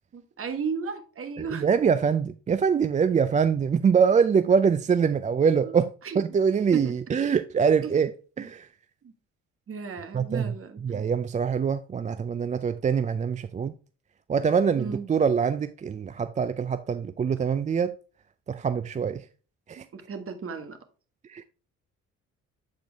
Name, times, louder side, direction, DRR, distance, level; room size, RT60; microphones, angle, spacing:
voice 1, 0.1-1.7 5.6-6.2 6.7-6.9 7.8-8.0 8.4-8.5 9.0-9.1 9.7-11.1 14.8-15.1 19.9-20.8, right 5 dB, 45° right, 1.3 m, -35 dB
voice 2, 1.5-8.1 8.4-8.7 10.1-10.5 10.8-13.7 14.3-17.9 18.5-19.2 19.7-19.9 21.3-21.4, right 6 dB, 25° right, 0.3 m, -24 dB
7.9 x 4.4 x 3.4 m
cardioid pair, 90°, 30 cm